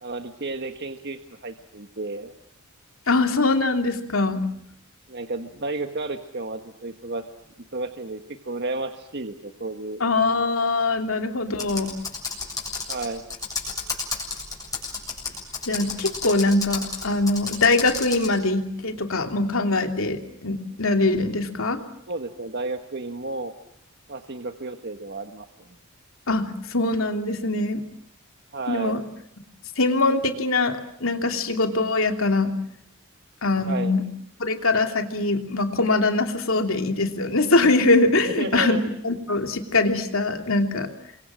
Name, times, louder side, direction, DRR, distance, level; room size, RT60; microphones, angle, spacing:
voice 1, 0.0-2.3 5.1-7.2 7.7-10.0 12.9-13.2 22.1-23.5 24.1-25.5 28.5-29.0 33.7-33.9 38.4-38.8, right 2 dB, 50° right, 6 dB, 1.5 m, -32 dB
voice 2, 3.1-4.4 10.0-11.9 15.7-21.8 26.3-27.8 28.7-29.0 29.8-32.5 33.4-34.0 34.4-38.8 39.0-40.9, left 2 dB, 70° left, 5 dB, 3.0 m, -22 dB
Computer keyboard, 11.5-18.3, left 4 dB, 15° left, 7.4 m, -32 dB
29.5 x 24.5 x 7.6 m, 0.71 s
head